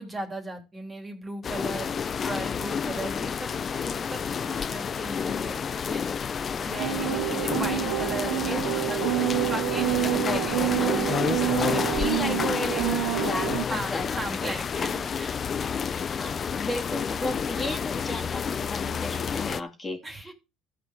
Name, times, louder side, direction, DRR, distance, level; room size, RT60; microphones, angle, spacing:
voice 1, 0.0-1.9 2.2-6.1 6.6-12.5 13.7-16.2 17.6-17.7 20.0-20.3, right 2 dB, 20° right, 3.2 m, -38 dB
sound 1, 1.4-19.6, left 6 dB, 40° left, 0.6 m, -30 dB
sound 2, 6.8-13.6, right 18 dB, 85° right, 0.6 m, -28 dB
voice 2, 11.7-14.1 14.4-14.5 16.1-20.3, left 2 dB, 25° left, 2.8 m, -34 dB
13.5 x 5.0 x 6.4 m
supercardioid pair, 90°, 0 cm